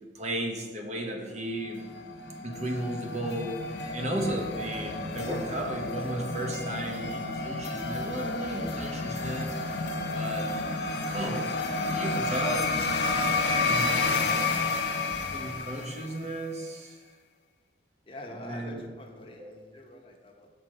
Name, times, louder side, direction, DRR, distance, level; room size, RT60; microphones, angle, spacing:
voice 1, 0.1-1.8 2.4-9.5 10.1-10.5 11.1-11.5 11.8-12.7 13.6-14.7 15.1-17.0 18.4-18.8 19.4-19.5, right 1 dB, 40° right, 2 dB, 1.1 m, -34 dB
sound 1, 1.6-16.3, left 3 dB, 90° left, 0.9 m, -31 dB
voice 2, 18.1-20.5, left 1 dB, 30° left, 1 dB, 1.0 m, -45 dB
6.7 x 4.5 x 6.4 m, 1.4 s
head